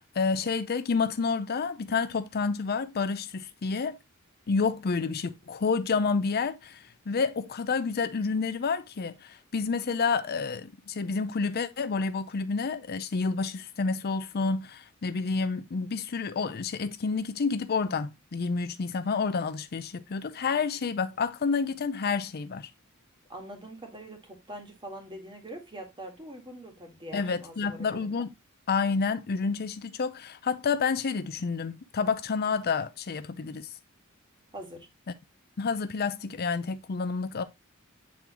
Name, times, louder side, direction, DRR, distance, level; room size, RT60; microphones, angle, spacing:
voice 1, 0.0-4.0 4.5-22.7 27.1-28.3 28.7-33.7 35.6-37.4, left 5 dB, 50° left, 0.5 m, -29 dB
voice 2, 23.3-28.1 34.5-34.9, right 1 dB, 25° right, 1.9 m, -43 dB
8.5 x 3.7 x 3.0 m
head